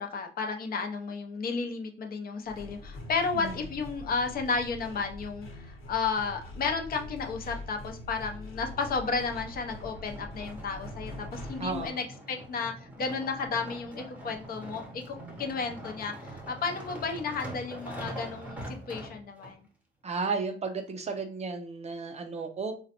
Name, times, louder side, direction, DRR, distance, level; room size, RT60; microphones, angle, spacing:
voice 1, 0.0-19.6, left 4 dB, 45° left, 4 dB, 0.5 m, -33 dB
sound 1, 2.4-11.9, left 1 dB, 80° left, 1.0 m, -44 dB
sound 2, 8.5-19.5 20.2-20.3, right 1 dB, 5° right, 0.7 m, -44 dB
voice 2, 11.6-12.0 20.0-22.7, right 4 dB, 30° right, 7 dB, 0.4 m, -33 dB
3.8 x 2.1 x 2.8 m, 0.41 s
cardioid pair, 135°, 21 cm